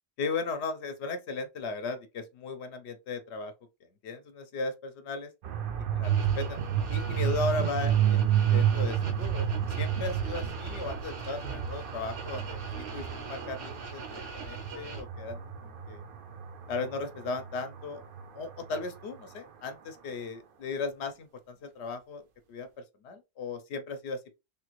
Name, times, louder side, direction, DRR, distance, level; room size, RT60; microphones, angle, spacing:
voice 1, 0.2-3.5 4.0-5.3 5.9-6.6 6.9-8.2 8.5-16.0 16.7-18.0 18.3-22.2 22.5-22.7 23.0-24.4, left 4 dB, 70° left, 0.9 m, -36 dB
sound 1, 5.4-19.3, right 9 dB, 60° right, 0.6 m, -31 dB
sound 2, 6.0-15.0, right 4 dB, 80° right, 1.1 m, -42 dB
3.2 x 2.4 x 2.9 m
omnidirectional pair, 1.2 m